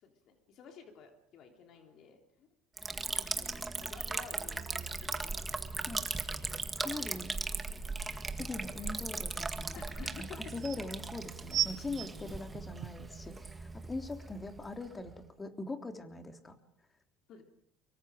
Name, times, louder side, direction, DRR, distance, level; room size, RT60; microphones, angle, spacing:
voice 1, 0.0-2.5 3.3-5.9 9.7-10.5 12.3-12.4 17.3-17.4, left 7 dB, 55° left, 3 dB, 3.3 m, -52 dB
Liquid, 2.8-15.2, right 3 dB, 20° right, 1.9 m, -38 dB
voice 2, 6.7-7.3 8.3-9.8 10.2-16.6, left 3 dB, 20° left, 5 dB, 3.4 m, -42 dB
sound 1, 9.9-10.0 10.3-10.8 11.5-13.1 13.8-13.9, right 10 dB, 55° right, 1.4 m, -35 dB
24.5 x 23.5 x 5.1 m, 0.79 s
hypercardioid pair, 75°, 0 cm